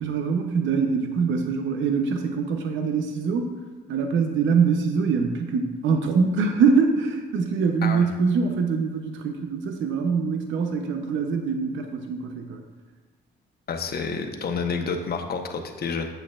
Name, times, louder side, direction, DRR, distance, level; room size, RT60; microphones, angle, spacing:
voice 1, 0.0-3.6 3.9-12.6, right 5 dB, 75° right, 5 dB, 0.7 m, -24 dB
voice 2, 13.7-16.1, left 5 dB, 50° left, 5 dB, 0.9 m, -29 dB
8.6 x 7.7 x 2.4 m, 1.4 s
cardioid pair, 90°, 20 cm